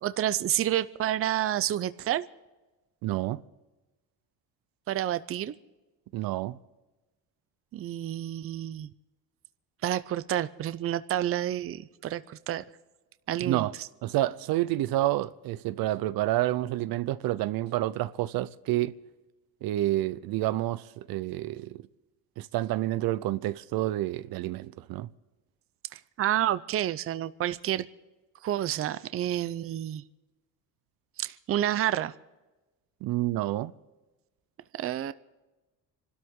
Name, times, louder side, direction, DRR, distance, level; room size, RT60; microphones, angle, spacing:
voice 1, 0.0-2.3 4.9-5.6 7.7-8.9 9.8-12.6 13.3-13.9 25.9-27.9 28.4-30.0 31.2-32.1 34.7-35.1, right 12 dB, 40° right, 0.6 m, -29 dB
voice 2, 3.0-3.4 6.1-6.6 13.4-13.7 14.0-18.9 19.6-21.8 22.4-25.1 33.0-33.7, right 15 dB, 75° right, 0.7 m, -29 dB
26.5 x 13.0 x 3.8 m
cardioid pair, 135°, 36 cm